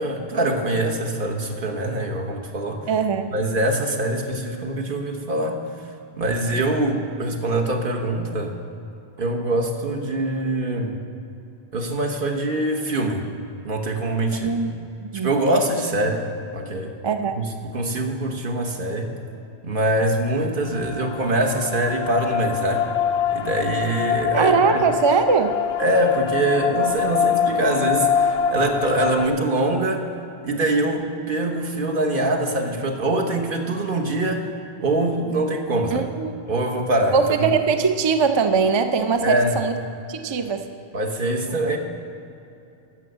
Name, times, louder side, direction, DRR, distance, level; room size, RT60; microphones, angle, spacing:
voice 1, 0.0-2.9 3.3-5.6 6.1-8.5 9.2-11.0 11.7-13.3 13.6-14.5 15.2-16.9 17.3-19.1 19.6-22.9 23.3-24.9 25.8-30.1 30.4-34.5 34.8-36.1 36.5-37.5 39.2-39.6 40.9-41.8, right 1 dB, 55° right, 2 dB, 1.3 m, -23 dB
voice 2, 2.9-3.3 14.4-14.7 15.0-15.3 17.0-17.4 24.3-25.5 35.9-36.3 37.1-39.7 40.1-40.6, right 5 dB, 40° right, 8 dB, 0.4 m, -21 dB
sound 1, 20.7-29.3, left 8 dB, 85° left, 0.8 m, -24 dB
13.0 x 6.2 x 7.9 m, 2.8 s
omnidirectional pair, 1.1 m